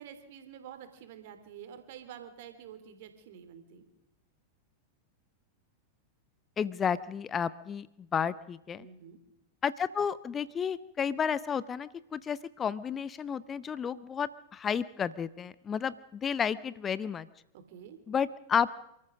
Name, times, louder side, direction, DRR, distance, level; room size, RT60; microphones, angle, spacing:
voice 1, 0.0-3.8 8.8-9.2 17.5-18.0, right 9 dB, 50° right, 9 dB, 3.3 m, -48 dB
voice 2, 6.6-7.9 8.1-8.9 9.6-17.3 18.1-18.7, left 7 dB, 20° left, 19 dB, 0.6 m, -32 dB
28.5 x 14.0 x 6.4 m, 0.85 s
figure-of-eight pair, 90°, 0 cm